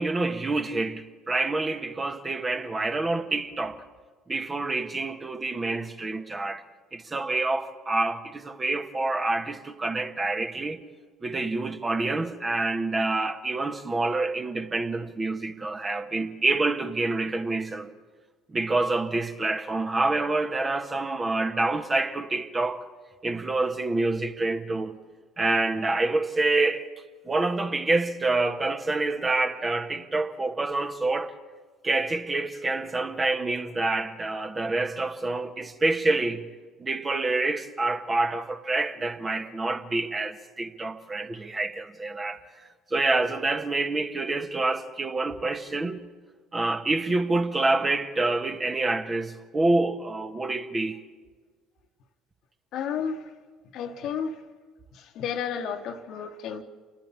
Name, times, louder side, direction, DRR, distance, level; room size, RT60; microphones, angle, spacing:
voice 1, 0.0-3.8 4.3-6.6 6.9-10.8 11.2-17.9 18.5-22.8 23.2-25.0 25.4-26.9 27.2-31.3 31.8-36.4 36.8-42.4 42.9-46.0 46.5-51.0, right 2 dB, 25° right, 1.4 m, -27 dB
voice 2, 52.7-53.2 53.7-54.4 54.9-56.6, left 7 dB, 55° left, 1.3 m, -32 dB
28.5 x 12.0 x 8.7 m
figure-of-eight pair, 55°, 0 cm